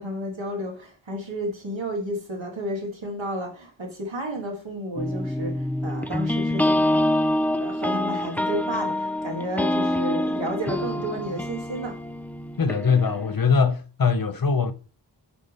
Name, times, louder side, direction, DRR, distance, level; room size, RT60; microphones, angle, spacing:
voice 1, 0.0-7.2 7.6-12.0, equal, 90° right, 1.8 m, -32 dB
sound 1, 5.0-13.3, left 1 dB, 5° left, 0.4 m, -26 dB
voice 2, 12.6-14.7, left 5 dB, 50° left, 0.7 m, -22 dB
8.0 x 3.8 x 3.4 m
wide cardioid pair, 45°, 45 cm